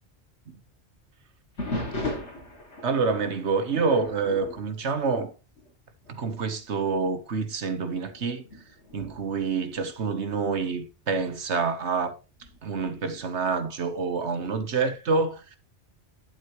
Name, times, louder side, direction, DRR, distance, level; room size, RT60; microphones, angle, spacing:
sound 1, 1.6-5.7 6.0-6.4 7.0-7.1 7.9-10.6 12.4-12.9, left 2 dB, 85° left, 2.6 m, -37 dB
voice 1, 2.8-5.3 6.1-8.4 8.9-12.1 12.6-15.6, right 4 dB, 75° right, 1.5 m, -27 dB
11.5 x 8.1 x 3.0 m
omnidirectional pair, 1.2 m